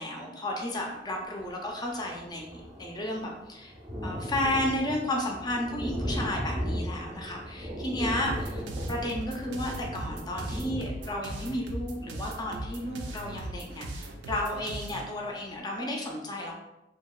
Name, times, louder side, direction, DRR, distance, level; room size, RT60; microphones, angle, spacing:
voice 1, 0.0-3.7 4.0-16.5, left 1 dB, 25° left, 0 dB, 0.4 m, -33 dB
Thunder, 1.4-1.5 1.7-14.3 14.8-14.9 15.2-15.3, equal, 20° right, 0.6 m, -37 dB
sound 1, 8.2-15.0, right 1 dB, 70° right, 0.4 m, -39 dB
2.8 x 2.8 x 2.3 m, 0.92 s
head